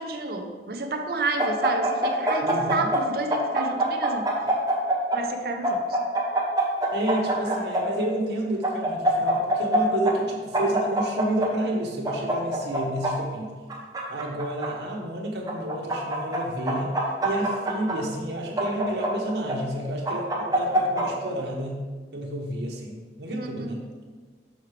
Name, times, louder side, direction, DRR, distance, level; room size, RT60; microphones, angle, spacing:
voice 1, 0.0-4.3 5.1-6.0 23.4-23.8, right 3 dB, 60° right, 4 dB, 0.5 m, -30 dB
sound 1, 1.4-3.0 3.3-5.2 5.6-7.8 8.6-9.8 10.0-10.1 10.5-11.5 12.0-13.1 13.7-14.7 15.5-16.4 16.7-17.9 18.6-19.5 20.1-21.0, right 1 dB, 20° right, 0.8 m, -24 dB
voice 2, 2.4-2.9 6.9-13.5 14.1-16.9 17.2-21.8 22.1-23.8, right 1 dB, 75° right, 0 dB, 1.0 m, -30 dB
6.3 x 4.7 x 3.3 m, 1.4 s
head